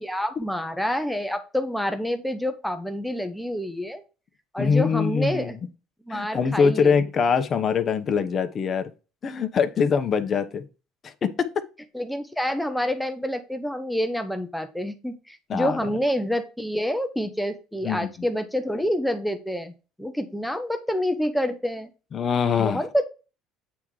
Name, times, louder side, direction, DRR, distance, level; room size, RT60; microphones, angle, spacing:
voice 1, 0.0-4.0 4.5-5.6 6.1-7.0 11.9-19.7 20.0-21.9 22.6-23.1, equal, ahead, 0.8 m, -27 dB
voice 2, 4.6-5.5 6.1-8.9 9.2-10.7 11.0-11.5 15.5-15.9 17.8-18.1 22.1-22.8, left 6 dB, 35° left, 1.0 m, -23 dB
8.6 x 3.6 x 4.8 m
supercardioid pair, 110°, 0 cm